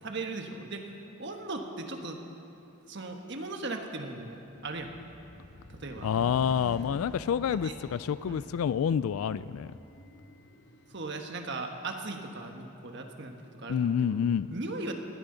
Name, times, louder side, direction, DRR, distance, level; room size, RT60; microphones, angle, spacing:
voice 1, 0.0-0.9 1.2-2.2 2.9-4.9 5.8-6.1 7.6-7.7 8.2-8.5 10.9-14.9, right 2 dB, 55° right, 4 dB, 1.3 m, -38 dB
sound 1, 4.7-11.0, left 1 dB, 55° left, 1.1 m, -48 dB
voice 2, 6.0-9.7 13.7-14.5, left 7 dB, 80° left, 15 dB, 0.3 m, -28 dB
20.0 x 16.0 x 3.9 m, 2.8 s
head